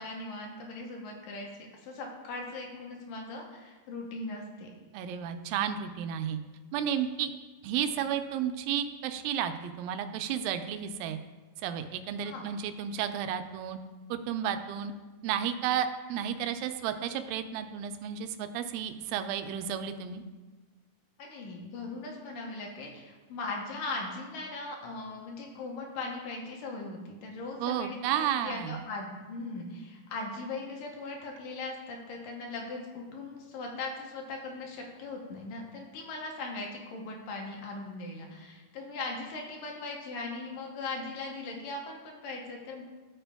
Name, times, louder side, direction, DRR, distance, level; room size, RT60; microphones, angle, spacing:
voice 1, 0.0-1.5 1.8-4.7 12.2-12.4 21.2-42.8, left 3 dB, 75° left, 0 dB, 2.4 m, -39 dB
voice 2, 4.9-6.4 6.7-7.3 7.6-11.2 11.6-13.8 14.1-14.9 15.2-20.2 27.6-28.8, right 9 dB, 85° right, 8 dB, 2.3 m, -32 dB
12.0 x 4.4 x 3.4 m, 1.3 s
omnidirectional pair, 4.0 m